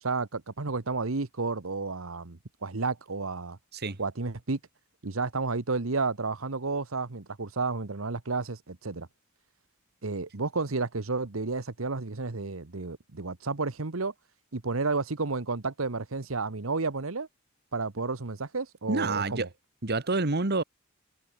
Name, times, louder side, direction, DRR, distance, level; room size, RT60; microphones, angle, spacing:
voice 1, 0.0-3.6 4.0-4.6 5.0-9.1 10.0-14.1 14.5-17.3 17.7-19.5, right 3 dB, 80° right, 1.2 m, -31 dB
voice 2, 18.9-19.5 19.8-20.6, right 3 dB, 50° right, 1.7 m, -28 dB
head